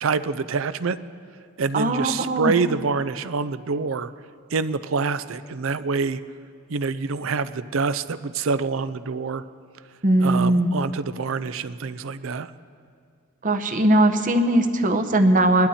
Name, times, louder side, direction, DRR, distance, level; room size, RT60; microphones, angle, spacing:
voice 1, 0.0-1.0 1.6-4.1 4.5-6.2 6.7-9.4 10.2-12.5, right 4 dB, 70° right, 14 dB, 0.5 m, -26 dB
voice 2, 1.7-2.5 10.0-10.7 13.4-15.7, right 1 dB, 40° right, 7 dB, 0.8 m, -19 dB
21.5 x 12.0 x 4.2 m, 2.2 s
head